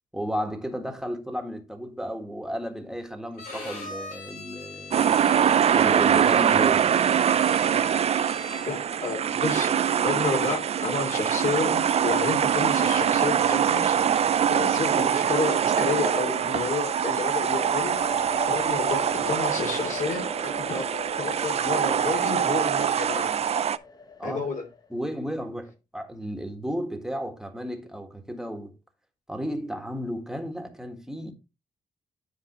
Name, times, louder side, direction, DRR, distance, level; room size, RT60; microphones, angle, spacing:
voice 1, 0.1-5.1 5.7-7.0 24.2-24.5 24.9-28.7 29.3-31.3, equal, 5° right, 1.5 m, -33 dB
Bowed string instrument, 3.3-8.9, left 4 dB, 85° left, 3.4 m, -42 dB
sound 1, 4.9-23.8, right 8 dB, 45° right, 0.4 m, -23 dB
voice 2, 8.7-9.7 10.0-14.0 14.5-18.0 18.5-20.8 21.2-23.4 24.2-24.6, left 4 dB, 60° left, 2.9 m, -30 dB
sound 2, 17.3-24.9, left 4 dB, 25° left, 0.8 m, -40 dB
10.5 x 4.8 x 3.0 m
cardioid pair, 100°, 15 cm